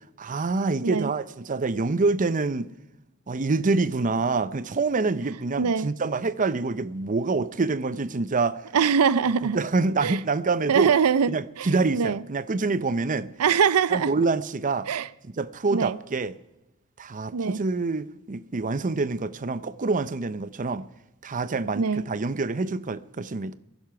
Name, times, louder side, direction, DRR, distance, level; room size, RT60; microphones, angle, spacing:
voice 1, 0.2-2.7 3.3-8.6 9.5-10.9 11.3-13.3 13.9-14.9 15.4-16.3 17.0-20.8 21.2-23.6, right 3 dB, 35° right, 0.6 m, -26 dB
voice 2, 5.6-5.9 8.7-9.6 10.0-10.2 10.7-11.3 11.6-12.2 13.4-14.1 14.9-15.1 15.7-16.0 17.3-17.6 21.7-22.1, right 6 dB, 80° right, 0.5 m, -23 dB
21.5 x 11.0 x 5.9 m
head